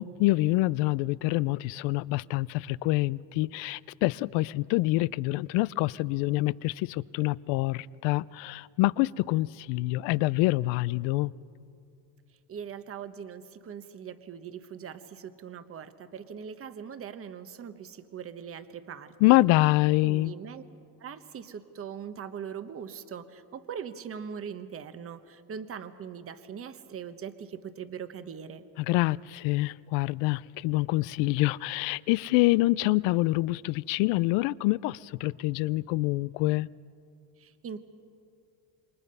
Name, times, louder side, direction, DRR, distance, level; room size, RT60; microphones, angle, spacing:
voice 1, 0.0-11.3 19.2-20.3 28.8-36.7, left 20 dB, 85° left, 21 dB, 0.6 m, -26 dB
voice 2, 12.5-19.4 20.0-20.6 21.0-28.6 37.4-37.8, right 7 dB, 30° right, 11 dB, 1.0 m, -41 dB
27.5 x 23.0 x 5.5 m, 2.5 s
cardioid pair, 120°, 43 cm